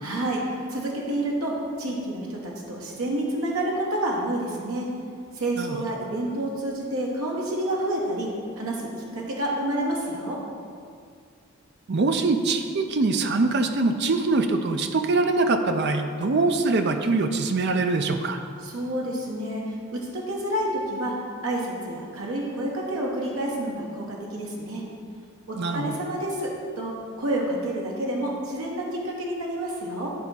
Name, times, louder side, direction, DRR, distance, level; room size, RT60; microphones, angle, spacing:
voice 1, 0.0-4.9 5.3-8.3 8.6-10.4 18.6-21.2 21.4-24.9 25.5-30.1, right 1 dB, 75° right, -2 dB, 1.1 m, -29 dB
voice 2, 11.9-18.4 25.5-26.0, right 3 dB, 50° right, 7 dB, 0.5 m, -23 dB
9.9 x 3.5 x 5.6 m, 2.2 s
head